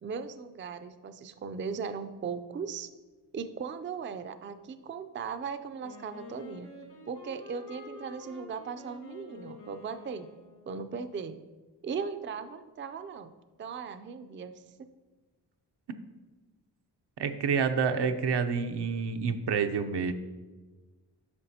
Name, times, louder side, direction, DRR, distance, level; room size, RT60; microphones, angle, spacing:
voice 1, 0.0-2.9 3.3-6.7 7.1-10.3 10.7-11.4 11.8-14.6, right 5 dB, 30° right, 10 dB, 0.4 m, -38 dB
Wind instrument woodwind instrument, 5.8-10.8, left 2 dB, 65° left, 1.9 m, -48 dB
voice 2, 17.2-20.1, right 6 dB, 75° right, 7 dB, 0.6 m, -28 dB
9.6 x 5.8 x 2.8 m, 1.3 s
cardioid pair, 70°, 42 cm